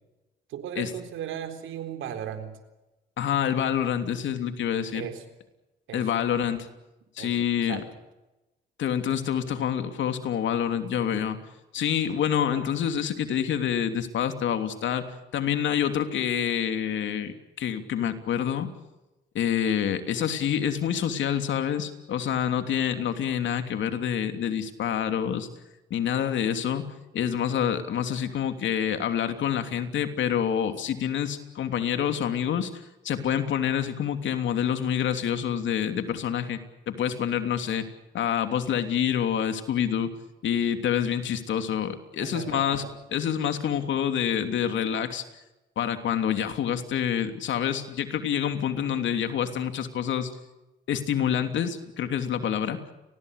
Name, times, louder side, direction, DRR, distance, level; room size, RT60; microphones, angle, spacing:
voice 1, 0.5-2.6 4.9-5.2 5.9-6.1 7.2-7.9 12.4-12.6 42.2-42.9 48.8-49.1, right 9 dB, 85° right, 7 dB, 4.0 m, -37 dB
voice 2, 3.2-5.1 5.9-6.7 7.2-7.8 8.8-11.4 11.7-18.7 19.3-25.5 25.9-26.8 27.1-36.6 36.9-37.9 38.1-40.1 40.4-42.8 43.1-45.2 45.8-50.3 50.9-52.8, left 9 dB, 70° left, 7 dB, 3.1 m, -27 dB
29.5 x 21.0 x 6.7 m, 1.0 s
cardioid pair, 90°, 20 cm